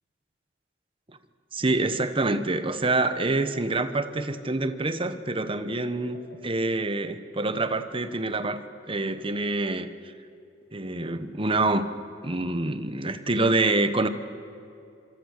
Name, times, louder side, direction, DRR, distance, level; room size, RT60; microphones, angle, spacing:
voice 1, 1.5-6.2 6.4-8.6 8.9-9.9 10.7-11.9 12.2-14.1, right 2 dB, 30° right, 11 dB, 1.2 m, -26 dB
sound 1, 3.2-6.4, equal, 60° left, 4.5 m, -49 dB
26.0 x 24.5 x 6.7 m, 2.6 s
head